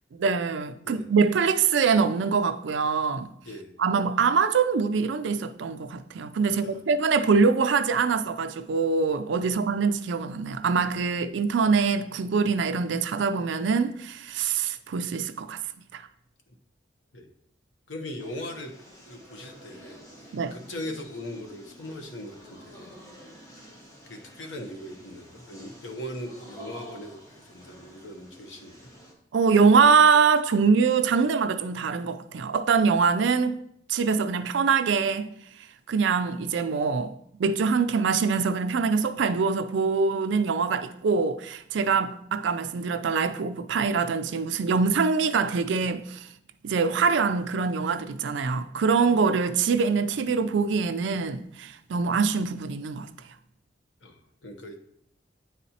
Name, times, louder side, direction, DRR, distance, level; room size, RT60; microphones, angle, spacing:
voice 1, 0.2-3.3 3.8-15.6 15.9-16.0 20.3-20.6 29.3-33.6 33.9-35.3 35.9-37.1 37.4-46.3 46.6-53.1, right 5 dB, 80° right, 0.4 m, -24 dB
voice 2, 6.4-6.8 9.4-9.6 17.1-17.3 17.9-18.7 19.1-22.9 24.0-28.9 54.0-54.8, left 1 dB, 90° left, 0.9 m, -40 dB
sound 1, 18.2-29.1, equal, 15° left, 1.0 m, -49 dB
9.1 x 4.1 x 2.8 m
head